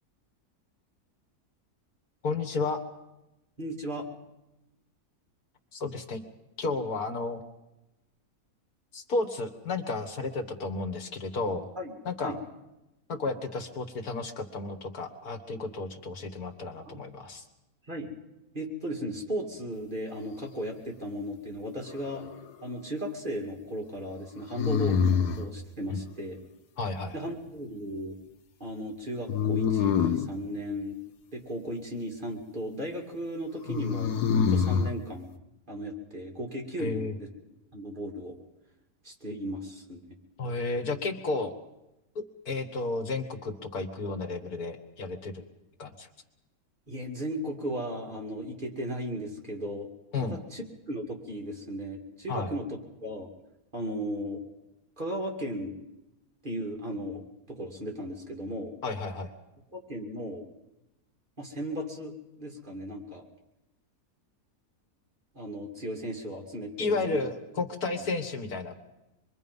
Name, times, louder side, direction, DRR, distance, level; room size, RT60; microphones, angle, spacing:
voice 1, 2.2-2.8 5.7-6.2 6.6-7.4 8.9-11.7 12.1-12.3 13.1-17.4 25.9-26.0 26.8-27.3 36.8-37.1 40.4-41.6 42.2-45.4 45.8-46.1 50.1-50.4 52.3-52.5 58.8-59.3 66.8-68.7, left 3 dB, 70° left, 4 dB, 2.0 m, -32 dB
voice 2, 3.6-4.0 11.8-12.4 16.9-17.0 17.8-18.1 18.5-22.3 22.6-26.4 27.1-28.1 28.6-31.0 31.3-34.1 34.5-35.3 35.7-37.3 37.7-38.4 39.0-40.2 46.9-49.9 50.2-52.7 53.0-53.3 53.7-54.4 55.0-55.7 56.4-57.2 57.5-58.8 59.7-60.4 61.4-63.3 65.3-67.2, equal, 30° right, 0 dB, 2.7 m, -36 dB
sound 1, 21.8-22.5 24.5-25.5 29.3-30.3 33.7-34.9, left 6 dB, 85° left, 1.5 m, -26 dB
26.0 x 22.5 x 5.5 m, 0.96 s
omnidirectional pair, 1.7 m